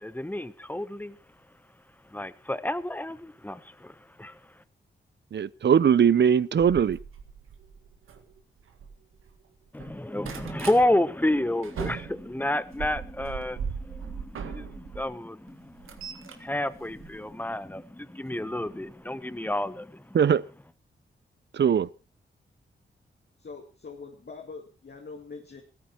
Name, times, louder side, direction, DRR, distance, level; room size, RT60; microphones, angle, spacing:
voice 1, 0.0-1.2 2.0-4.6 9.7-20.2, left 1 dB, 10° left, 1.2 m, -30 dB
voice 2, 5.3-7.0 20.1-20.4 21.5-21.9, right 8 dB, 60° right, 0.6 m, -20 dB
sound 1, 6.6-9.3 9.7-10.8 11.3-15.1 15.5-17.7 18.7-18.9 19.4-19.5 19.7-19.8, right 6 dB, 85° right, 1.8 m, -39 dB
voice 3, 23.4-25.6, left 4 dB, 55° left, 2.4 m, -43 dB
16.0 x 13.0 x 4.5 m
cardioid pair, 45°, 21 cm